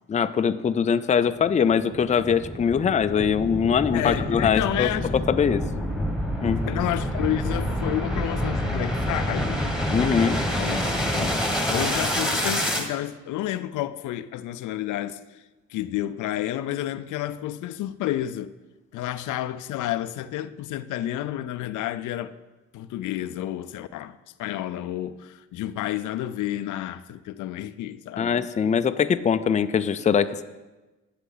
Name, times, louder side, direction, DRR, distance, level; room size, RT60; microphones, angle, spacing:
voice 1, 0.1-4.9 5.3-5.6 6.4-6.6 9.9-10.4 28.2-30.4, left 7 dB, 25° left, 0.4 m, -22 dB
sound 1, 1.4-12.9, equal, ahead, 1.6 m, -27 dB
voice 2, 3.9-5.1 6.6-9.7 10.6-10.8 11.1-11.4 11.7-15.4 15.7-18.5 18.9-22.3 22.7-28.3, left 13 dB, 80° left, 0.5 m, -30 dB
11.5 x 8.1 x 3.9 m
cardioid pair, 90°, 30 cm